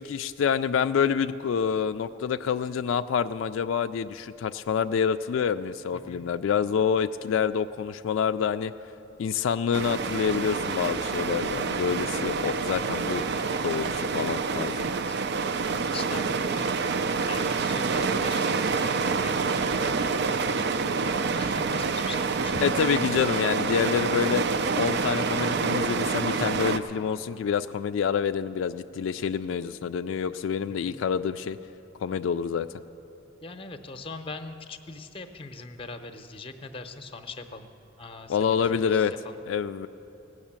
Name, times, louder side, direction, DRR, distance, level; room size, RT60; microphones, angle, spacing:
voice 1, 0.0-8.7 9.2-13.3 13.6-14.8 22.6-24.4 24.8-31.6 32.0-32.7 38.3-39.1 39.5-39.9, left 7 dB, 85° left, 10 dB, 0.3 m, -27 dB
voice 2, 5.9-6.3 14.8-15.2 15.9-16.8 17.3-18.9 19.2-22.6 30.7-31.0 33.4-37.7 38.0-39.4, left 3 dB, 30° left, 8 dB, 0.7 m, -41 dB
sound 1, 9.7-26.8, right 4 dB, 60° right, 0.5 m, -27 dB
17.0 x 6.4 x 8.8 m, 2.9 s
head